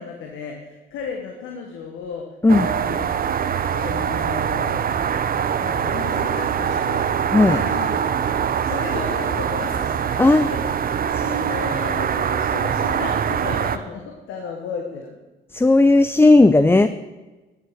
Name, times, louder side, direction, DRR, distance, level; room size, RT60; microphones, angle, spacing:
voice 1, 0.0-3.1 3.7-4.8 5.6-7.1 7.4-8.0 8.3-10.6 11.0-15.2 15.6-15.8, left 5 dB, 90° left, 2 dB, 1.5 m, -34 dB
sound 1, 2.5-13.8, right 8 dB, 45° right, 0.7 m, -23 dB
voice 2, 10.2-10.5 15.5-16.9, left 2 dB, 10° left, 11 dB, 0.5 m, -14 dB
12.5 x 7.8 x 6.4 m, 1.2 s
cardioid pair, 90°, 20 cm